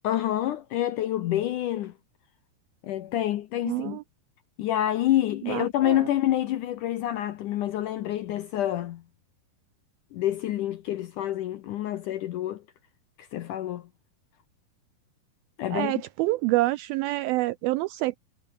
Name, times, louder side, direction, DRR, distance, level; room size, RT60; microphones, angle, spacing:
voice 1, 0.0-1.9 2.8-4.0 4.6-9.0 10.1-12.6 13.2-13.9 15.6-16.0, left 13 dB, 75° left, 1.9 m, -27 dB
voice 2, 3.7-4.0 5.4-6.1 15.7-18.2, right 19 dB, 85° right, 2.1 m, -27 dB
omnidirectional pair, 4.7 m